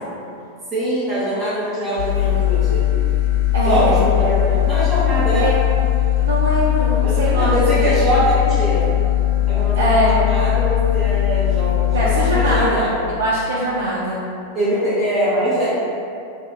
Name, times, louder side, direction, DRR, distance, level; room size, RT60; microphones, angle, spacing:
voice 1, 0.7-2.9 3.6-5.5 7.0-8.9 9.5-13.1 14.5-15.7, right 1 dB, 25° right, -10 dB, 0.7 m, -22 dB
sound 1, 2.0-12.6, left 13 dB, 60° left, 0.5 m, -19 dB
voice 2, 3.5-4.0 5.3-5.6 6.2-8.0 9.8-10.1 11.9-12.9 13.2-14.2, right 1 dB, 65° right, -8 dB, 0.4 m, -21 dB
2.2 x 2.1 x 3.3 m, 2.5 s
figure-of-eight pair, 90°, 0 cm